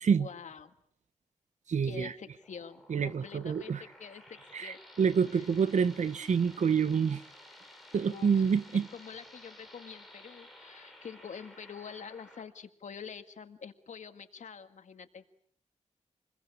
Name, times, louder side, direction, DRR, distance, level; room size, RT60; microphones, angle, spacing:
voice 1, 0.2-0.7 1.8-4.8 5.3-5.5 8.0-15.2, left 6 dB, 90° left, 1.9 m, -46 dB
voice 2, 1.7-2.1 2.9-3.8 4.5-7.2 7.9-8.9, right 6 dB, 80° right, 1.1 m, -27 dB
sound 1, 2.4-12.4, left 1 dB, ahead, 5.2 m, -54 dB
28.0 x 21.0 x 8.5 m
wide cardioid pair, 120°, 12 cm